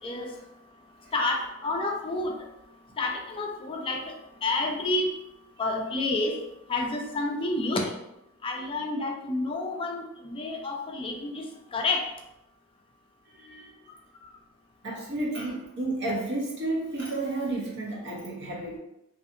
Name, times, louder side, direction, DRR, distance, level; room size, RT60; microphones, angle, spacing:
voice 1, 1.1-2.5 3.0-4.2 4.4-5.1 5.6-6.4 6.7-7.9 8.4-11.4 11.7-12.0, left 2 dB, 25° left, 1 dB, 0.3 m, -29 dB
voice 2, 13.4-13.7 14.8-18.8, right 2 dB, 55° right, -3 dB, 0.8 m, -31 dB
2.6 x 2.4 x 2.5 m, 0.85 s
head